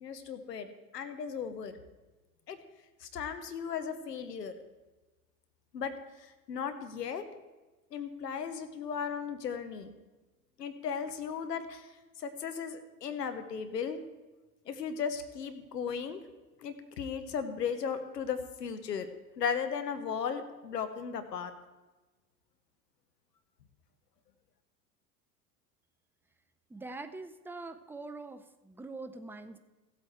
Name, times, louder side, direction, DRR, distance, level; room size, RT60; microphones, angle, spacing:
voice 1, 0.0-1.8 2.5-2.6 3.0-4.5 5.7-5.9 6.5-7.2 7.9-9.9 10.6-11.9 12.2-14.0 14.7-16.2 16.6-19.1 19.4-21.5, left 7 dB, 80° left, 9 dB, 1.1 m, -36 dB
voice 2, 26.7-29.6, right 3 dB, 5° right, 8 dB, 0.5 m, -44 dB
15.0 x 8.2 x 4.5 m, 1.2 s
figure-of-eight pair, 75°, 48 cm